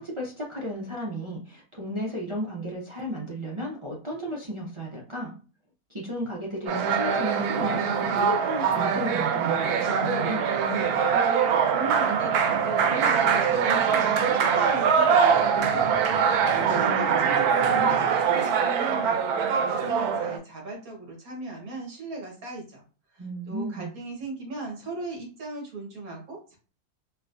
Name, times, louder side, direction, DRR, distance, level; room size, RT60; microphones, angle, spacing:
voice 1, 0.0-5.3 5.9-7.8 8.1-10.5 23.2-23.9, equal, 40° right, -3 dB, 0.4 m, -34 dB
sound 1, 6.7-20.4, right 6 dB, 90° right, 1.1 m, -23 dB
voice 2, 11.7-16.0 16.5-22.8 23.1-26.6, right 2 dB, 75° right, 0 dB, 1.7 m, -38 dB
4.3 x 2.2 x 2.5 m, 0.37 s
omnidirectional pair, 1.6 m